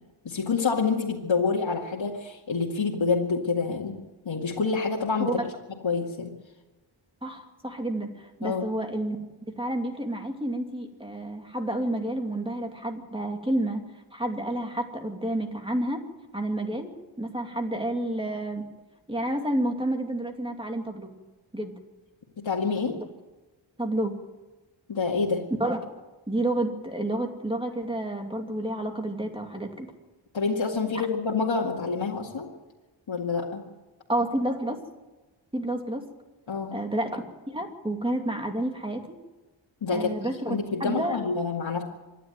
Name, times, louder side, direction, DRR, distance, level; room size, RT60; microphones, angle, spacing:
voice 1, 0.2-3.9 4.3-5.3 5.8-6.3 8.4-8.6 22.4-23.0 24.9-25.4 30.3-32.5 33.1-33.6 36.5-36.7 39.8-40.2 40.5-41.8, left 4 dB, 75° left, -2 dB, 2.2 m, -27 dB
voice 2, 7.2-9.2 9.6-13.8 14.1-16.0 16.3-16.9 17.2-18.7 19.1-21.1 21.5-21.7 22.9-23.0 23.8-24.2 25.6-25.8 26.3-29.9 34.1-34.8 35.5-36.0 36.7-39.0 39.9-40.5 40.8-41.2, right 1 dB, 10° right, 3 dB, 2.7 m, -30 dB
26.0 x 11.0 x 9.1 m, 1.2 s
wide cardioid pair, 105°, 47 cm